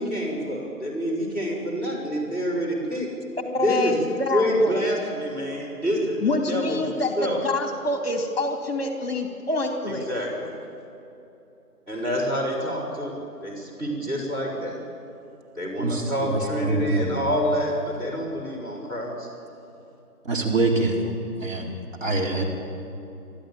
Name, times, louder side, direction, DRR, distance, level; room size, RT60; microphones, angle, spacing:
voice 1, 0.0-3.1 3.6-4.0 4.3-7.4 10.0-10.5 11.9-14.8 15.5-19.3, equal, 10° right, -9 dB, 4.9 m, -27 dB
voice 2, 3.4-4.8 6.2-10.1, left 2 dB, 40° left, 3 dB, 2.5 m, -26 dB
voice 3, 15.8-17.1 20.2-21.1 21.4-21.7 22.0-22.4, right 2 dB, 55° right, 0 dB, 4.0 m, -25 dB
25.0 x 13.5 x 8.8 m, 2.8 s
figure-of-eight pair, 165°, 46 cm